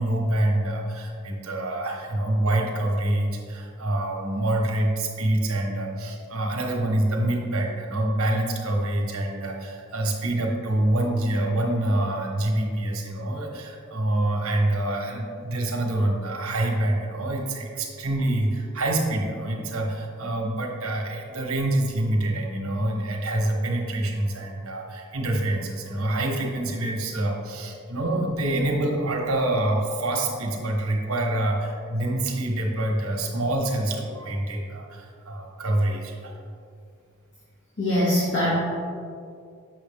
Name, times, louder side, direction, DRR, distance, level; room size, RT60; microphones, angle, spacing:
voice 1, 0.0-36.4, right 1 dB, 75° right, 1 dB, 1.2 m, -26 dB
voice 2, 37.8-38.5, left 1 dB, 55° left, -8 dB, 1.6 m, -22 dB
7.9 x 5.9 x 3.5 m, 2.4 s
head